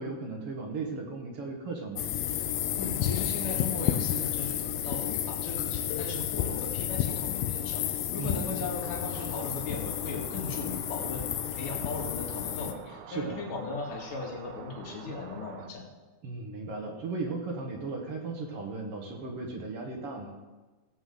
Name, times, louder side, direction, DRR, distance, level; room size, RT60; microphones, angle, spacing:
voice 1, 0.0-2.1 8.2-8.5 13.1-13.4 16.2-20.4, right 3 dB, 55° right, 2 dB, 1.9 m, -36 dB
sound 1, 2.0-12.7, left 11 dB, 90° left, 2.4 m, -31 dB
voice 2, 2.8-15.9, left 3 dB, 70° left, -2 dB, 3.4 m, -38 dB
sound 2, 5.9-11.3 12.4-12.5 13.3-13.5, left 5 dB, 40° left, 1.6 m, -50 dB
sound 3, 8.8-15.7, right 7 dB, 75° right, 1.8 m, -47 dB
17.0 x 8.1 x 3.8 m, 1.2 s
omnidirectional pair, 3.9 m